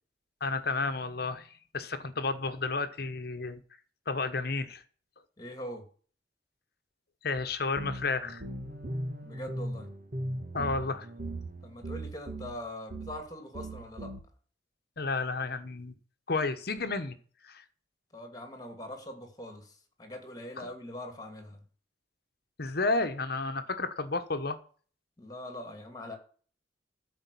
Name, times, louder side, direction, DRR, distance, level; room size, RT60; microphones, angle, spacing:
voice 1, 0.4-1.5 1.7-3.6 4.1-4.8 7.2-8.4 10.5-11.1 15.0-15.9 16.3-17.2 17.4-17.6 20.6-20.7 22.6-24.6, left 3 dB, 60° left, 1.1 m, -31 dB
voice 2, 5.4-5.9 9.2-9.9 11.6-14.1 18.1-21.6 25.2-26.2, left 1 dB, 20° left, 2.7 m, -42 dB
sound 1, 7.4-7.5 7.8-12.6 12.9-13.2 13.5-14.2, right 1 dB, 50° right, 1.7 m, -38 dB
13.5 x 5.2 x 8.4 m
head